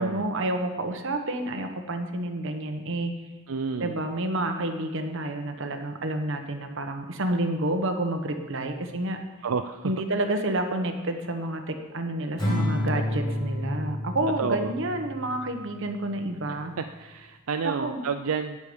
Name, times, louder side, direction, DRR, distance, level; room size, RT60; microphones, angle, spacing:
voice 1, 0.0-3.1 3.8-9.2 9.8-16.7 17.6-18.0, right 1 dB, 65° right, 5 dB, 1.3 m, -29 dB
voice 2, 3.5-4.0 9.4-9.9 14.4-14.7 16.8-18.6, right 5 dB, 85° right, 7 dB, 0.5 m, -30 dB
Acoustic guitar / Strum, 12.4-15.7, left 1 dB, 20° left, 5.1 m, -29 dB
17.5 x 7.1 x 5.2 m, 1.2 s
head